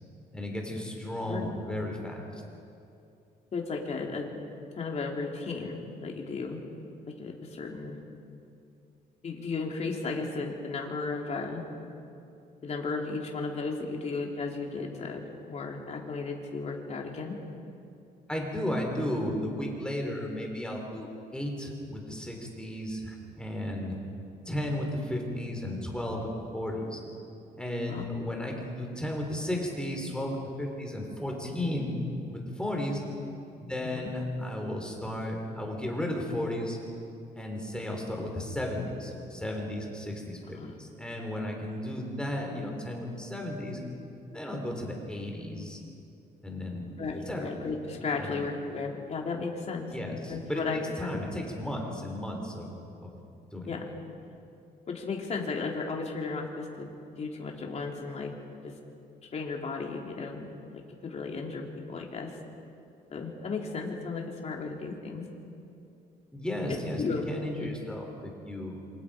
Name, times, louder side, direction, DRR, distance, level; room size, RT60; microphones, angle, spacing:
voice 1, 0.3-2.4 18.3-21.1 21.3-24.0 24.5-27.0 27.6-31.9 32.3-33.0 33.6-36.8 37.3-43.8 44.3-45.8 46.4-46.9 47.3-47.5 48.2-48.4 49.9-52.7 53.0-53.2 53.5-53.8 66.3-68.8, left 1 dB, 5° left, 0 dB, 4.0 m, -34 dB
voice 2, 3.5-4.3 4.8-6.6 7.2-8.0 9.2-11.6 12.6-17.4 27.9-28.0 33.8-34.1 40.6-40.7 47.0-50.8 51.1-51.2 53.6-53.9 54.9-56.9 57.2-58.3 58.6-58.7 59.3-60.5 60.7-62.4 63.1-65.3 66.7-67.2 67.6-67.7, left 4 dB, 40° left, 0 dB, 3.3 m, -35 dB
27.0 x 25.5 x 5.1 m, 2.6 s
cardioid pair, 130°, 17 cm